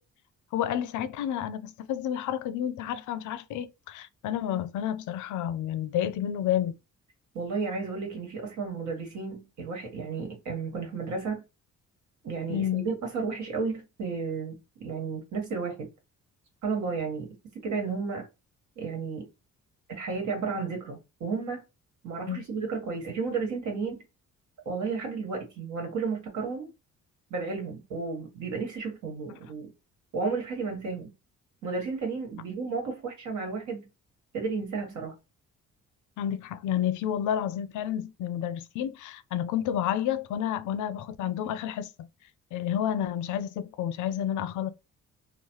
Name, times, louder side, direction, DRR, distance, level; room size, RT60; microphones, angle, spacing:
voice 1, 0.5-6.8 12.5-12.9 22.3-22.5 36.2-42.1 42.5-44.7, left 10 dB, 80° left, 0.5 m, -30 dB
voice 2, 7.3-11.4 12.2-15.9 16.6-17.3 17.5-18.3 18.8-19.3 19.9-21.6 22.0-24.0 24.6-26.7 27.3-29.7 30.1-31.1 31.6-33.9 34.3-35.2, right 4 dB, 75° right, 1.3 m, -33 dB
3.1 x 2.0 x 2.9 m
cardioid pair, 90°, 30 cm